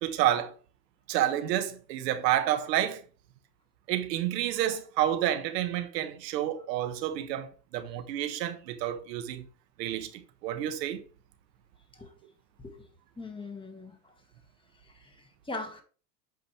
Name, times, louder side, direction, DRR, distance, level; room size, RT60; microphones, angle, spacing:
voice 1, 0.0-0.5 1.1-3.0 3.9-9.4 9.8-11.0, right 12 dB, 75° right, 1.3 m, -29 dB
voice 2, 13.2-14.1 14.8-15.8, left 2 dB, 10° left, 1.5 m, -41 dB
8.2 x 5.2 x 3.0 m
supercardioid pair, 115°, 50 cm